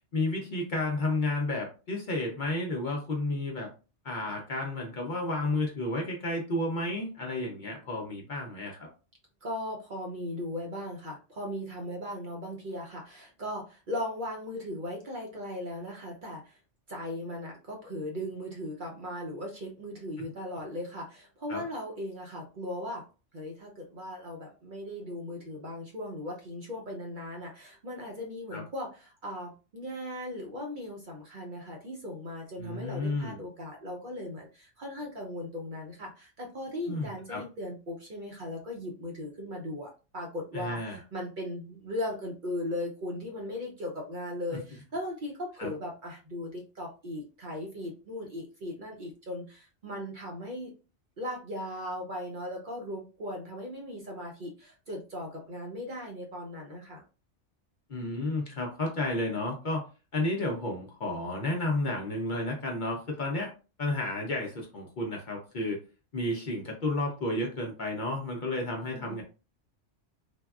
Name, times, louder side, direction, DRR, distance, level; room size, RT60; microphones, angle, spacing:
voice 1, 0.1-3.7 4.0-8.9 20.2-20.3 21.5-21.6 28.5-28.6 32.6-33.4 36.9-37.4 40.5-41.0 45.6-45.7 57.9-59.8 60.1-63.5 63.8-65.8 66.1-69.2, left 2 dB, 50° left, 0 dB, 0.6 m, -32 dB
voice 2, 9.4-16.6 16.9-23.0 23.3-50.7 51.2-57.0 68.8-69.2, left 1 dB, 55° right, 0 dB, 0.7 m, -38 dB
3.4 x 2.2 x 2.3 m, 0.33 s
omnidirectional pair, 1.2 m